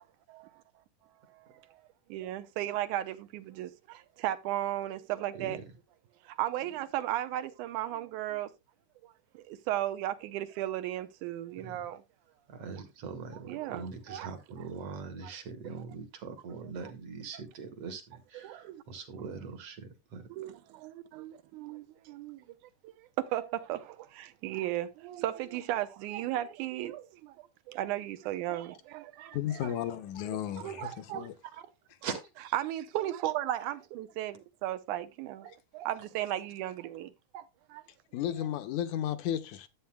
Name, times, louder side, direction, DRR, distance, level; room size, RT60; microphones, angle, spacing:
voice 1, 0.3-0.8 1.3-1.8 2.1-5.6 6.2-8.5 9.0-12.0 13.5-14.3 18.3-18.8 20.3-22.6 22.8-27.4 27.7-29.7 30.3-30.4 30.6-31.7 32.5-37.8, right 13 dB, 90° right, 2.1 m, -36 dB
voice 2, 12.5-20.3 32.0-32.3, right 5 dB, 60° right, 2.0 m, -42 dB
voice 3, 29.3-31.3 38.1-39.7, left 10 dB, 75° left, 2.1 m, -34 dB
11.5 x 8.0 x 2.3 m
omnidirectional pair, 3.5 m